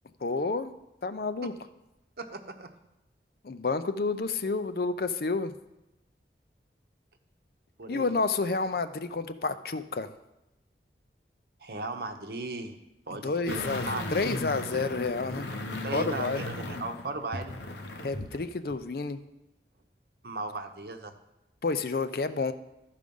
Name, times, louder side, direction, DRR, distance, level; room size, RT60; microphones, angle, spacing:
voice 1, 0.2-0.7 1.0-1.5 3.4-5.5 7.9-10.1 13.1-15.5 15.9-16.4 18.0-19.2 21.6-22.5, left 4 dB, 55° left, 11 dB, 0.5 m, -30 dB
voice 2, 2.2-2.7 7.8-8.2 11.6-12.7 13.1-14.0 15.8-17.5 20.2-21.1, right 2 dB, 60° right, 6 dB, 0.9 m, -37 dB
sound 1, 13.5-18.4 18.7-18.8, left 2 dB, 90° left, 1.1 m, -36 dB
13.5 x 5.0 x 5.3 m, 0.94 s
head